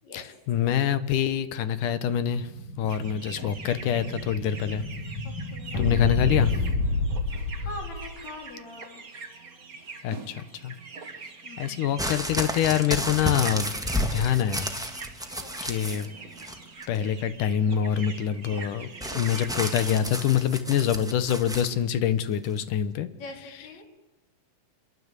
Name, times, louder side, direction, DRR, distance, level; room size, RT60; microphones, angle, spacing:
voice 1, 0.1-2.5 2.8-4.8 5.8-6.5 10.0-10.7 11.6-13.7 14.1-14.7 15.6-16.1 16.9-18.9 19.1-23.1 23.5-23.7, left 9 dB, 70° left, 13 dB, 2.6 m, -25 dB
Explosion, 2.4-8.1, left 2 dB, 90° left, 7.0 m, -30 dB
sound 1, 2.9-20.0, right 4 dB, 30° right, 1.8 m, -43 dB
voice 2, 3.2-3.5 5.5-5.9 7.6-9.0 11.4-12.0 15.4-16.1 23.2-23.8, left 2 dB, 55° left, 2 dB, 5.0 m, -43 dB
sound 2, 12.0-16.1 16.4-17.0 19.0-21.7 22.6-22.7, equal, ahead, 0.9 m, -32 dB
27.0 x 22.0 x 8.3 m, 1.0 s
omnidirectional pair, 3.9 m